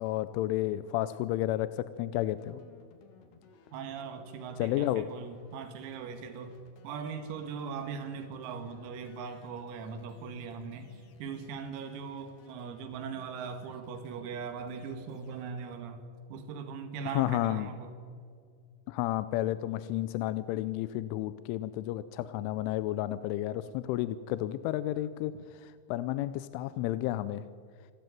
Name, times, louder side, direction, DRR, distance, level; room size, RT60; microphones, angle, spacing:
voice 1, 0.0-2.6 4.6-5.1 17.1-17.7 18.9-27.4, left 14 dB, 80° left, 14 dB, 2.9 m, -32 dB
sound 1, 2.4-15.5, left 5 dB, 60° left, 3.6 m, -60 dB
voice 2, 3.7-6.6 6.8-16.0 16.3-17.9, right 6 dB, 85° right, 7 dB, 4.7 m, -40 dB
28.0 x 13.5 x 9.3 m, 2.2 s
omnidirectional pair, 6.0 m